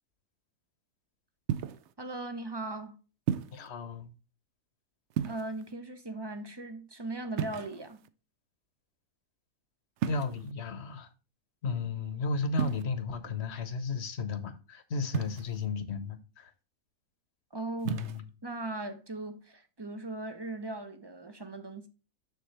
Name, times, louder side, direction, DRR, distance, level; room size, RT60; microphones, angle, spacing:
sound 1, 1.5-1.9 3.3-3.7 5.1-5.7 7.4-8.1 10.0-10.5 12.5-12.8 15.1-15.7 17.8-18.2, right 9 dB, 65° right, 0.7 m, -34 dB
voice 1, 2.0-3.0 5.2-8.0 17.5-18.0 18.4-21.9, right 2 dB, 25° right, 0.6 m, -38 dB
voice 2, 3.5-4.1 10.1-11.1 11.6-16.5 17.8-18.2, left 4 dB, 50° left, 1.1 m, -34 dB
6.9 x 6.9 x 3.2 m
omnidirectional pair, 1.6 m